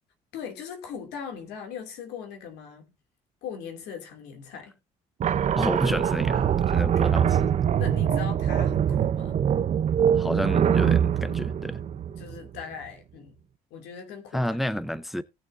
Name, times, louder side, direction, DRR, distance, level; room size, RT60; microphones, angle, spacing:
voice 1, 0.3-2.9 3.4-4.8 6.9-7.0 7.8-9.4 12.2-13.3 13.7-14.6, left 7 dB, 85° left, 2.5 m, -39 dB
sound 1, 5.2-12.6, right 9 dB, 45° right, 0.7 m, -23 dB
voice 2, 5.6-7.5 10.2-11.8 14.3-15.2, equal, ahead, 0.5 m, -30 dB
18.0 x 6.7 x 2.6 m
cardioid pair, 110°, 17 cm